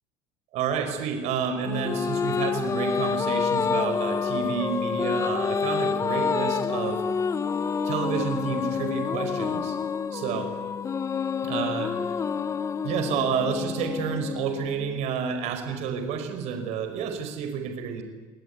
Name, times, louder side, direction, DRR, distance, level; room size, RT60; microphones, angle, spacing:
voice 1, 0.5-7.0 7.8-9.8 10.1-10.5 11.4-11.9 12.8-18.0, right 6 dB, 65° right, 6 dB, 5.4 m, -30 dB
sound 1, 1.7-15.3, left 6 dB, 25° left, 0.9 m, -28 dB
27.0 x 19.5 x 9.7 m, 1.3 s
cardioid pair, 130°, 12 cm